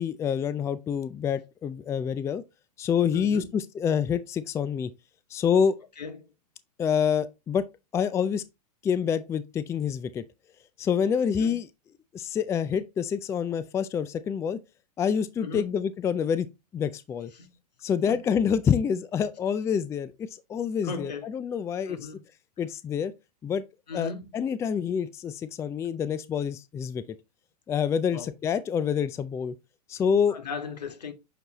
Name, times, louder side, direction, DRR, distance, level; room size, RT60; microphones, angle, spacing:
voice 1, 0.0-2.4 2.8-4.9 5.3-5.8 6.8-7.6 7.9-8.4 8.8-10.2 10.8-11.7 12.1-14.6 15.0-16.5 16.7-17.3 17.8-22.0 22.6-23.1 23.4-23.6 23.9-27.0 27.7-29.5 29.9-30.4, left 7 dB, 15° left, 0.4 m, -27 dB
voice 2, 3.1-3.5 6.0-6.3 11.4-11.6 15.4-15.7 17.3-17.5 18.1-18.2 20.8-21.3 21.9-22.2 23.9-24.3 28.1-28.3 30.3-31.1, left 4 dB, 80° left, 1.8 m, -37 dB
8.0 x 4.6 x 2.9 m
hypercardioid pair, 115°, 21 cm